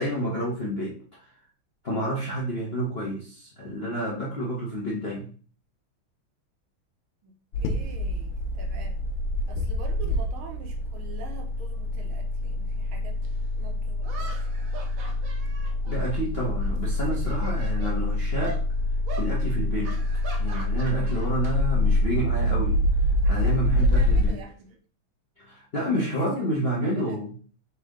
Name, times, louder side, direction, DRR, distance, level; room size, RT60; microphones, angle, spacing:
voice 1, 0.0-1.3 1.8-5.3 15.9-18.6 19.2-20.0 20.4-24.4 25.4-27.3, right 1 dB, 55° left, -5 dB, 0.6 m, -29 dB
voice 2, 7.2-9.1 9.5-13.2 13.6-14.5 23.2-24.7 25.9-26.5 26.8-27.2, right 4 dB, 85° right, 3 dB, 1.7 m, -45 dB
sound 1, 7.5-24.3, left 1 dB, 85° left, 1.5 m, -26 dB
sound 2, 13.2-13.3 14.0-16.7 17.0-18.0 18.4-18.6 19.1-19.3 19.8-21.5 21.8-22.1 23.3-24.7, right 3 dB, 65° right, 0.9 m, -42 dB
4.2 x 3.4 x 3.6 m, 0.42 s
omnidirectional pair, 2.3 m